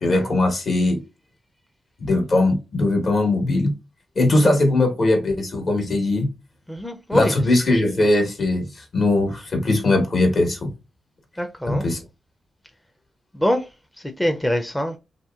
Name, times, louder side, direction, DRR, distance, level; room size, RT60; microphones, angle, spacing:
voice 1, 0.0-1.0 2.1-3.7 4.1-6.3 7.1-10.7 11.7-12.0, left 2 dB, 55° left, 1.3 m, -20 dB
voice 2, 6.7-7.4 8.0-8.1 11.4-11.8 13.3-13.7 14.2-15.0, equal, 10° left, 0.5 m, -24 dB
2.9 x 2.8 x 2.3 m
cardioid pair, 65°, 0 cm